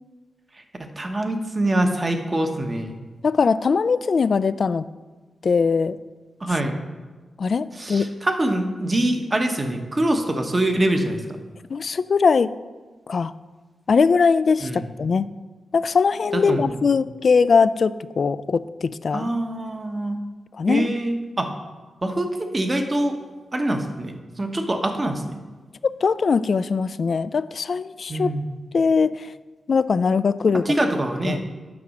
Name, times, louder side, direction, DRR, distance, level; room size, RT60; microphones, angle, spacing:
voice 1, 1.0-2.9 6.4-6.8 7.7-11.2 14.6-14.8 16.3-16.8 19.1-20.2 20.7-21.5 22.0-23.2 23.5-25.4 28.1-28.5 30.7-31.4, right 1 dB, 30° right, 5 dB, 1.1 m, -24 dB
voice 2, 3.2-4.9 5.4-6.0 7.4-8.1 11.7-12.5 13.1-13.3 13.9-15.3 15.7-19.3 20.6-20.9 25.8-28.3 28.7-29.3 29.7-30.6 31.3-31.4, left 5 dB, 55° left, 15 dB, 0.3 m, -21 dB
8.3 x 6.0 x 6.3 m, 1.3 s
cardioid pair, 85°, 0 cm